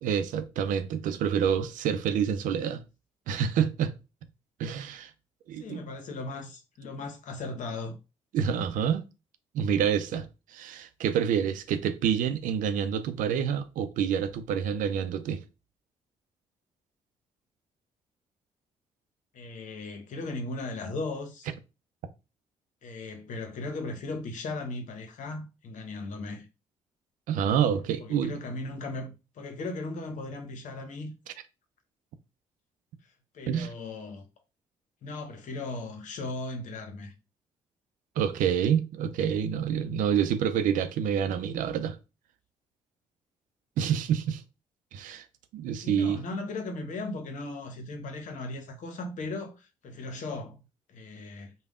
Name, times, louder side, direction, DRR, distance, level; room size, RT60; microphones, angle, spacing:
voice 1, 0.0-2.8 3.3-3.9 4.6-5.1 5.5-5.8 8.3-9.0 9.5-15.4 27.3-28.3 33.5-33.7 38.2-42.0 43.8-44.4 44.9-45.2 45.5-46.2, right 8 dB, 75° right, 0.5 m, -27 dB
voice 2, 5.6-8.0 19.3-21.5 22.8-26.5 28.0-31.1 33.3-34.3 35.0-37.1 45.8-50.6 50.9-51.5, left 2 dB, 65° left, 0.9 m, -37 dB
3.4 x 2.3 x 3.6 m
hypercardioid pair, 50°, 14 cm